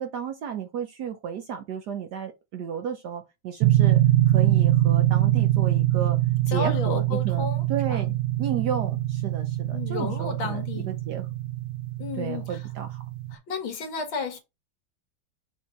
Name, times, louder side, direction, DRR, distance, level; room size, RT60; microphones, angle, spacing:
voice 1, 0.0-4.0 4.3-6.2 6.5-8.1 8.4-11.3 12.2-13.0, right 8 dB, 70° right, 1.0 m, -33 dB
sound 1, 3.6-13.4, right 14 dB, 85° right, 1.5 m, -24 dB
voice 2, 6.5-7.6 7.9-8.0 9.7-10.9 12.0-12.6 13.3-14.4, left 5 dB, 70° left, 2.2 m, -32 dB
6.3 x 2.9 x 5.6 m
omnidirectional pair, 2.3 m